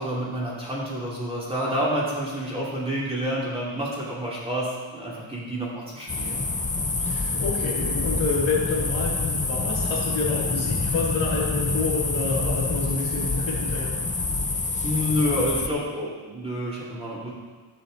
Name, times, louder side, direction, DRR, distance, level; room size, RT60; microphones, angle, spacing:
voice 1, 0.0-6.4 14.8-17.3, equal, 10° right, -7 dB, 2.6 m, -28 dB
sound 1, 6.1-15.7, left 3 dB, 15° left, 0.5 m, -27 dB
voice 2, 7.0-13.9, left 3 dB, 70° left, -5 dB, 2.6 m, -28 dB
11.0 x 7.2 x 4.0 m, 1.4 s
wide cardioid pair, 140°, 49 cm